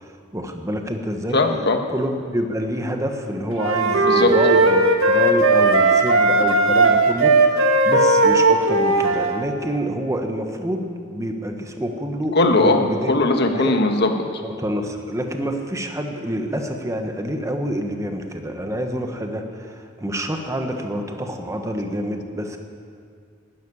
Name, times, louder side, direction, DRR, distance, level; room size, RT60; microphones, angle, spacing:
voice 1, 0.0-1.4 1.9-13.1 13.4-13.8 14.4-22.6, equal, 15° right, 4 dB, 1.2 m, -27 dB
voice 2, 1.3-1.8 4.1-4.3 12.3-14.1, left 2 dB, 55° left, 4 dB, 1.5 m, -18 dB
sound 1, 3.6-9.4, right 2 dB, 85° right, 1.5 m, -17 dB
12.0 x 12.0 x 9.9 m, 2.2 s
head